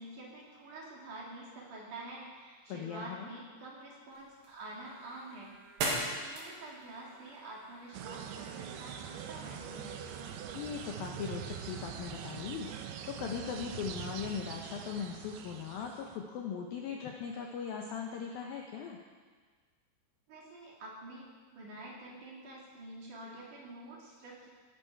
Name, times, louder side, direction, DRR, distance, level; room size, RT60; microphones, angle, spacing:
voice 1, 0.0-5.5 5.9-10.0 20.3-24.5, right 2 dB, 50° right, -4 dB, 3.3 m, -47 dB
voice 2, 2.7-3.3 10.5-19.0, left 7 dB, 90° left, 1 dB, 2.1 m, -39 dB
sound 1, 4.1-15.1, right 2 dB, 70° right, 4.5 m, -44 dB
sound 2, 7.9-16.2, right 9 dB, 85° right, 2.3 m, -43 dB
18.0 x 11.0 x 4.5 m, 1.5 s
omnidirectional pair, 5.4 m